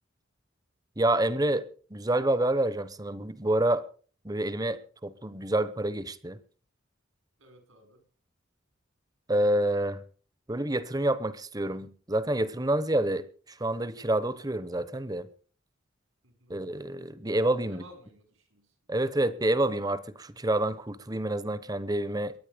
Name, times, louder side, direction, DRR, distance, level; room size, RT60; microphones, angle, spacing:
voice 1, 1.0-3.9 4.2-6.4 9.3-10.0 10.5-15.3 16.5-17.8 18.9-22.3, right 1 dB, 20° right, 1.0 m, -28 dB
voice 2, 7.4-8.0 16.2-16.6 17.7-19.1, equal, 90° right, 5.6 m, -55 dB
22.5 x 10.0 x 5.2 m
head